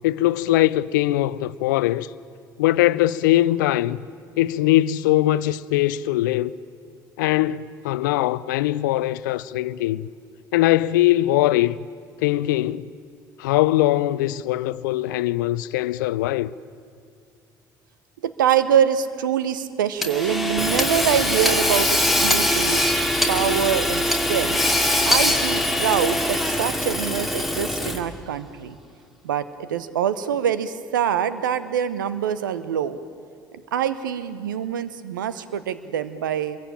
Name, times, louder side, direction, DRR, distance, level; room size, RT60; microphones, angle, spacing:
voice 1, 0.0-2.1 2.6-4.0 4.4-6.6 7.2-10.1 10.5-11.8 12.2-12.9 13.4-16.5, left 15 dB, 75° left, 0.6 m, -21 dB
voice 2, 18.2-22.8 23.3-24.6 25.0-28.8 29.2-33.0 33.7-36.6, right 9 dB, 85° right, 1.0 m, -24 dB
Hammer / Sawing, 20.0-28.2, left 1 dB, ahead, 2.6 m, -22 dB
25.5 x 22.5 x 8.9 m
hypercardioid pair, 60°, 10 cm